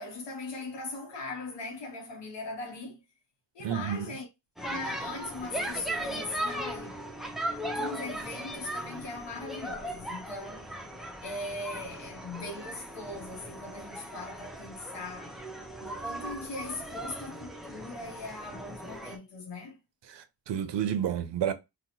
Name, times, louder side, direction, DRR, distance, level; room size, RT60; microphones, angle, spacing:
voice 1, 0.0-3.0 3.5-4.3 4.7-7.0 7.6-10.7 11.2-15.4 15.8-19.8, left 2 dB, 75° left, 0.7 m, -40 dB
voice 2, 3.6-4.1 20.1-21.5, right 9 dB, 75° right, 0.5 m, -30 dB
sound 1, 4.6-19.2, right 1 dB, ahead, 0.3 m, -38 dB
2.8 x 2.0 x 3.9 m
wide cardioid pair, 175°, 43 cm